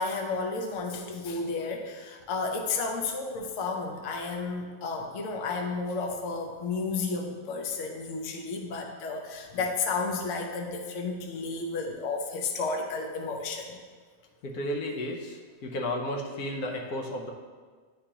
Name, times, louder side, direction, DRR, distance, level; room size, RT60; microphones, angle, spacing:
voice 1, 0.0-13.8, left 4 dB, 60° left, 2 dB, 1.0 m, -32 dB
voice 2, 14.4-17.3, left 1 dB, 80° left, 1 dB, 1.2 m, -33 dB
9.7 x 3.8 x 2.8 m, 1.5 s
omnidirectional pair, 1.6 m